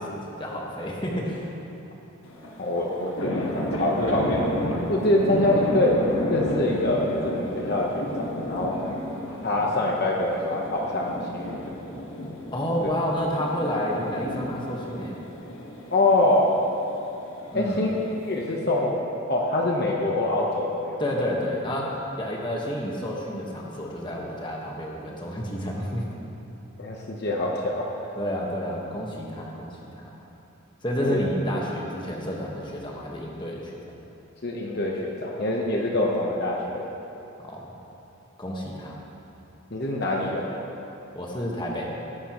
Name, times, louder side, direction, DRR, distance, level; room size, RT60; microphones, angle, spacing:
voice 1, 0.0-1.5 12.5-15.2 17.5-17.8 21.0-26.0 28.1-30.1 30.8-33.8 37.4-37.7 38.4-39.0 41.1-42.0, equal, 20° left, -2 dB, 1.4 m, -30 dB
sound 1, 2.2-18.6, left 1 dB, 70° left, 1.5 m, -33 dB
voice 2, 2.6-6.0 6.3-8.7 9.4-11.8 15.9-16.5 17.5-17.9 18.2-19.0 19.3-21.0 26.8-27.9 31.0-31.2 34.4-36.9 39.7-40.6, left 1 dB, 50° left, -1 dB, 1.0 m, -25 dB
18.0 x 11.0 x 3.1 m, 2.9 s
head